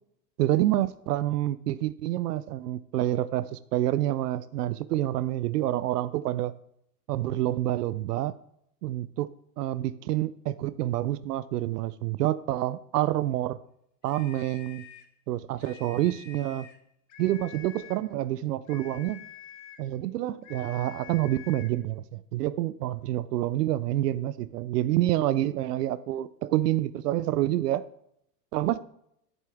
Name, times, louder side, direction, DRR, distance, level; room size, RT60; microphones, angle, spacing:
voice 1, 0.4-6.5 7.1-8.4 8.8-9.3 9.6-13.6 14.0-14.8 15.3-16.7 17.2-19.2 19.8-27.8 28.5-28.8, right 14 dB, 75° right, 0.6 m, -28 dB
sound 1, 14.0-15.1 15.6-16.8 17.1-18.1 18.7-19.9 20.4-21.8, left 10 dB, 35° left, 1.2 m, -48 dB
11.0 x 8.9 x 3.5 m
hypercardioid pair, 115°, 48 cm